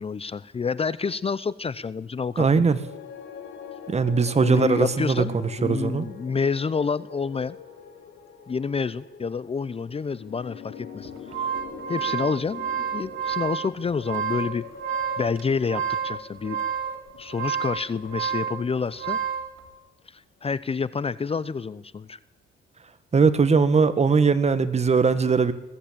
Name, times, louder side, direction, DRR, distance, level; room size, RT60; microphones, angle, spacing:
voice 1, 0.0-2.7 4.4-7.6 8.5-11.1 11.4-11.5 11.9-14.6 15.2-16.6 17.2-19.2 20.1-22.2, left 5 dB, 30° left, 17 dB, 0.7 m, -28 dB
voice 2, 2.4-2.8 3.9-6.1 23.1-25.5, right 5 dB, 35° right, 12 dB, 1.7 m, -20 dB
sound 1, 2.7-19.0, left 7 dB, 80° left, 3.7 m, -43 dB
sound 2, 11.0-19.5, right 8 dB, 80° right, 3.2 m, -30 dB
21.0 x 15.0 x 8.8 m, 0.93 s
cardioid pair, 90°, 20 cm